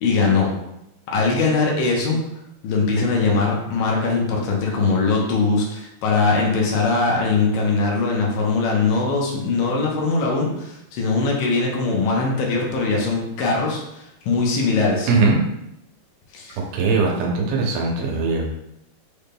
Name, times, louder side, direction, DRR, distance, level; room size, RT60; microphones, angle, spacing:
voice 1, 0.0-0.5 1.1-2.2 2.6-15.1 16.3-16.6, left 3 dB, 75° left, -2 dB, 2.3 m, -21 dB
voice 2, 16.7-18.5, right 4 dB, 80° right, -1 dB, 2.5 m, -20 dB
6.5 x 3.5 x 2.2 m, 0.83 s
omnidirectional pair, 4.5 m